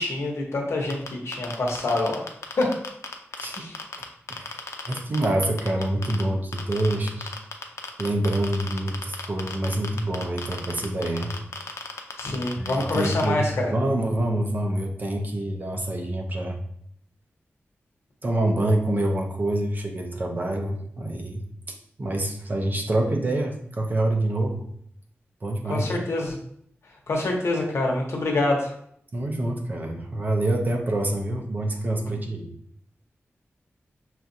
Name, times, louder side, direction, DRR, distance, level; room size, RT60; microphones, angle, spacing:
voice 1, 0.0-2.2 2.6-2.7 3.4-3.7 12.2-13.7 25.7-26.4 27.1-28.7, left 2 dB, 70° left, 0 dB, 0.9 m, -26 dB
sound 1, 0.9-4.0 4.3-6.2 6.5-13.2, left 5 dB, 85° left, 0.5 m, -34 dB
voice 2, 3.4-3.7 4.0-7.3 8.0-11.3 12.6-16.6 18.2-21.4 22.0-24.7 25.4-25.9 29.1-32.5, right 1 dB, 40° right, 2 dB, 0.6 m, -26 dB
5.8 x 2.4 x 2.7 m, 0.68 s
wide cardioid pair, 145°, 5 cm